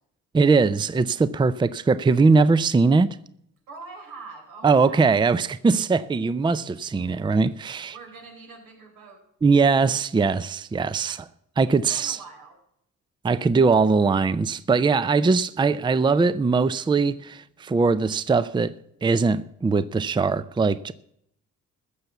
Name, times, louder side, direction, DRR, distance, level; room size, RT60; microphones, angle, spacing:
voice 1, 0.3-3.1 4.6-7.9 9.4-11.3 11.6-12.2 13.2-18.7 19.0-20.9, right 4 dB, 15° right, 0.5 m, -21 dB
voice 2, 3.7-5.0 7.9-9.2 10.8-11.2 11.7-12.6, right 3 dB, 90° right, 4.4 m, -44 dB
15.0 x 6.7 x 8.2 m
cardioid pair, 90°, 30 cm